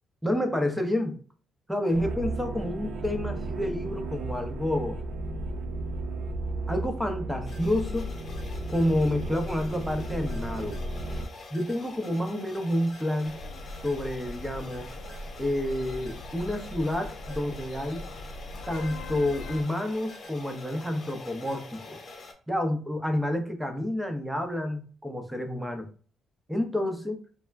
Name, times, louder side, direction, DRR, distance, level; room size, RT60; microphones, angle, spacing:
voice 1, 0.2-1.2 1.7-5.0 6.7-8.1 8.7-10.8 11.5-13.4 13.8-14.9 15.4-18.1 18.7-22.0 22.5-25.9 26.5-27.2, left 1 dB, 5° right, 5 dB, 0.6 m, -29 dB
sound 1, 1.9-11.3, right 2 dB, 70° right, 0.4 m, -34 dB
sound 2, 7.5-22.3, left 3 dB, 45° left, 0.7 m, -46 dB
sound 3, 13.2-19.6, left 2 dB, 70° left, 0.4 m, -41 dB
2.2 x 2.1 x 3.4 m, 0.41 s
cardioid pair, 90°, 0 cm